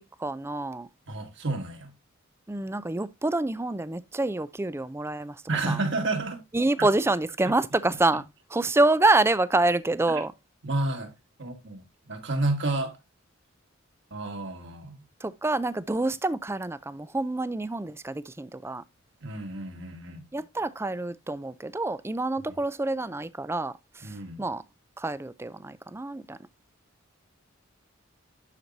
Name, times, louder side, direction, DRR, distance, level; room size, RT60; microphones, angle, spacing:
voice 1, 0.0-0.9 2.5-5.8 6.5-8.2 8.5-10.3 15.2-18.8 20.3-24.6 25.0-26.4, right 2 dB, 10° right, 0.4 m, -27 dB
voice 2, 1.1-1.9 5.5-6.4 6.8-6.9 10.1-10.2 10.6-11.1 11.4-13.0 14.1-15.0 19.2-20.2 22.5-22.6 24.0-24.4, right 2 dB, 60° right, 2.0 m, -30 dB
11.5 x 4.6 x 2.6 m
head